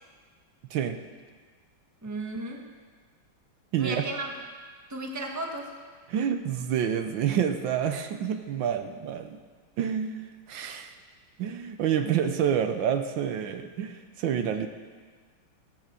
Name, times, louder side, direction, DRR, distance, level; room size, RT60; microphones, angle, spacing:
voice 1, 2.0-2.7 3.8-4.3 4.9-5.7, right 2 dB, 10° right, 1 dB, 1.2 m, -34 dB
voice 2, 3.7-4.1 6.1-9.4 9.8-10.9 11.4-14.7, right 8 dB, 75° right, 7 dB, 1.5 m, -28 dB
16.0 x 8.7 x 6.8 m, 1.5 s
omnidirectional pair, 2.1 m